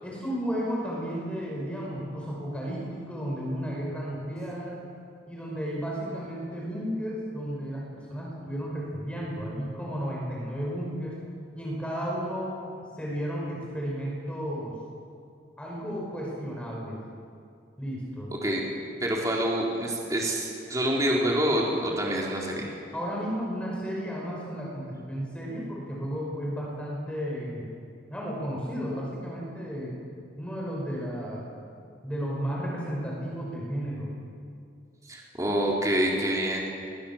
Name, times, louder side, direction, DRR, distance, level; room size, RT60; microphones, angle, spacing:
voice 1, 0.0-4.8 5.3-11.2 11.6-12.6 13.0-14.8 15.6-17.0 17.8-18.3 22.9-27.7 28.1-29.9 30.4-31.5 32.0-34.1, equal, 5° left, -4 dB, 6.0 m, -33 dB
voice 2, 19.0-22.7 35.1-36.6, right 1 dB, 20° right, -2 dB, 4.1 m, -26 dB
28.5 x 22.5 x 7.4 m, 2.4 s
head